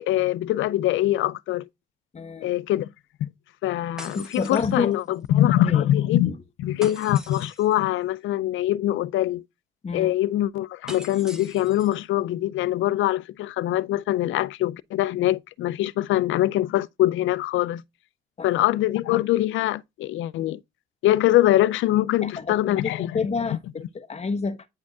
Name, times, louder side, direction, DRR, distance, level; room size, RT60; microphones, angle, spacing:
voice 1, 0.0-1.7 2.4-2.9 3.2-3.3 3.6-6.3 6.6-9.4 9.9-17.8 18.4-20.6 21.0-23.1, left 14 dB, 80° left, 0.4 m, -23 dB
voice 2, 2.1-2.5 4.0-4.9 5.6-5.9 6.2-6.4 9.8-10.1 18.4-18.5 22.2-24.7, left 4 dB, 35° left, 1.0 m, -29 dB
sound 1, 4.0-5.3 6.8-7.8 10.9-12.0, equal, 5° right, 1.3 m, -43 dB
9.4 x 5.1 x 2.3 m
cardioid pair, 90°, 20 cm